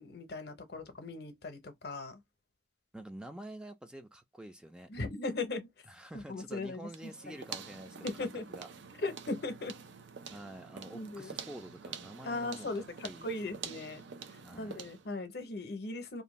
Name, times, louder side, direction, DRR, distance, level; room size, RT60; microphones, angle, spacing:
voice 1, 0.0-2.2 4.9-5.7 6.1-7.3 8.0-8.4 9.0-9.8 10.9-11.3 12.2-14.0 14.5-16.2, left 2 dB, 60° left, 0.7 m, -38 dB
voice 2, 2.9-4.9 5.9-8.7 10.3-12.7 13.0-13.8 14.4-14.9, right 1 dB, 5° right, 0.3 m, -48 dB
sound 1, 6.9-15.1, right 6 dB, 85° right, 0.5 m, -47 dB
2.6 x 2.2 x 3.0 m
head